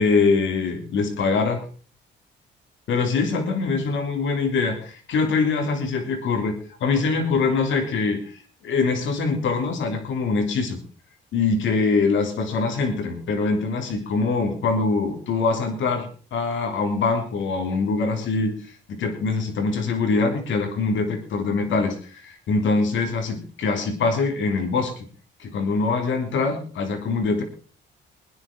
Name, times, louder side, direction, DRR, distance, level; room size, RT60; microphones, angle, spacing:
voice 1, 0.0-1.6 2.9-6.5 6.8-8.3 8.6-10.8 11.3-18.5 18.9-24.9 25.4-27.4, left 4 dB, 75° left, 5 dB, 3.3 m, -23 dB
22.0 x 10.0 x 4.4 m, 0.41 s
cardioid pair, 90°, 20 cm